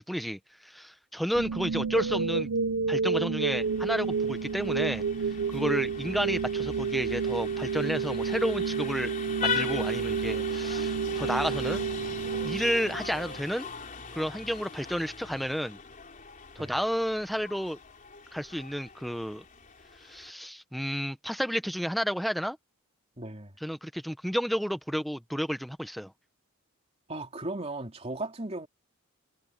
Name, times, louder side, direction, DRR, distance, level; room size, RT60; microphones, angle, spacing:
voice 1, 0.0-2.5 2.9-5.0 5.5-9.1 9.4-11.8 12.4-13.7 14.1-15.8 16.6-17.8 18.3-19.4 20.0-22.6 23.6-26.1, equal, ahead, 1.0 m, -31 dB
sound 1, 1.3-13.4, right 5 dB, 80° right, 0.7 m, -30 dB
Vehicle horn car horn honking, 3.5-20.3, left 6 dB, 35° left, 4.0 m, -40 dB
voice 2, 23.2-23.5 27.1-28.7, right 2 dB, 30° right, 3.3 m, -36 dB
head